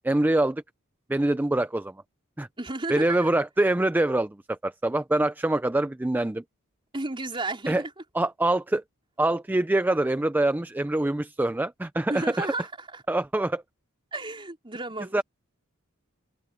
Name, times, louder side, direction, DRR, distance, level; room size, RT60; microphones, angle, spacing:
voice 1, 0.0-0.6 1.1-1.9 2.4-2.5 2.9-6.4 7.7-7.8 8.1-8.8 9.2-12.5 13.1-13.6 15.1-15.2, right 1 dB, 10° right, 0.4 m, -24 dB
voice 2, 2.6-3.3 6.9-7.9 12.1-13.0 14.1-15.2, right 2 dB, 25° right, 4.0 m, -33 dB
head